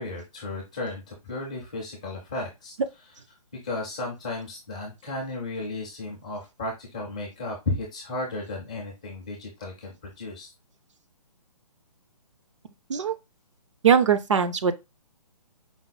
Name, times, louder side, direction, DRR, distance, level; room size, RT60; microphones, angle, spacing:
voice 1, 0.0-2.7 3.6-10.5, left 2 dB, 10° left, 0.4 m, -34 dB
voice 2, 13.8-14.7, right 7 dB, 50° right, 0.5 m, -21 dB
4.7 x 2.0 x 3.9 m
hypercardioid pair, 170°, 20 cm